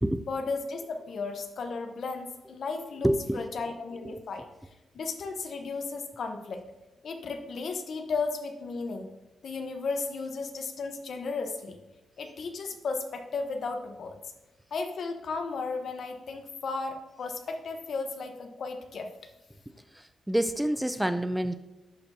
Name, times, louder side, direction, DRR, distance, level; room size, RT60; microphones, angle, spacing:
voice 1, 0.3-4.5 4.9-6.6 7.0-9.1 9.4-11.8 12.2-14.2 14.7-19.1, left 4 dB, 65° left, 6 dB, 0.9 m, -34 dB
voice 2, 3.0-3.4 20.3-21.6, right 1 dB, 5° right, 11 dB, 0.4 m, -27 dB
11.5 x 4.4 x 2.7 m, 1.0 s
cardioid pair, 65°, 0 cm